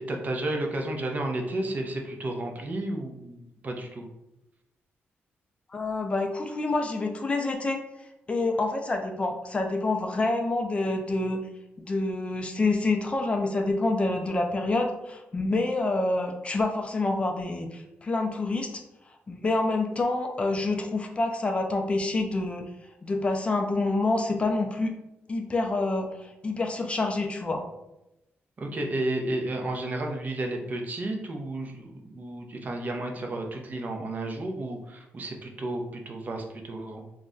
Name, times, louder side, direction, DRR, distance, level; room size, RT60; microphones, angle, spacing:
voice 1, 0.0-4.1 28.6-37.0, right 1 dB, 40° right, 2 dB, 0.5 m, -32 dB
voice 2, 5.7-7.8 8.3-11.4 11.9-18.8 19.3-22.6 23.0-24.9 25.3-27.6, left 2 dB, 25° left, 3 dB, 0.3 m, -27 dB
2.4 x 2.1 x 3.7 m, 0.91 s
cardioid pair, 105°, 4 cm